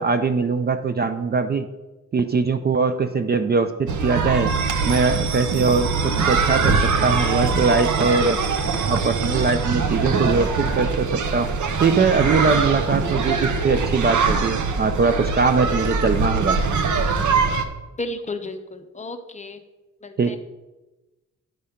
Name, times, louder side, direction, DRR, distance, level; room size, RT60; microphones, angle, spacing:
voice 1, 0.0-1.7 2.1-4.5 4.9-8.4 8.9-11.5 11.8-16.6 20.2-20.4, right 4 dB, 35° right, 9 dB, 0.4 m, -21 dB
sound 1, 3.9-17.6, right 4 dB, 70° right, 0.8 m, -22 dB
voice 2, 18.0-19.6 20.0-20.4, left 2 dB, 25° left, 7 dB, 0.5 m, -33 dB
10.5 x 5.0 x 5.6 m, 1.1 s
wide cardioid pair, 180°, 31 cm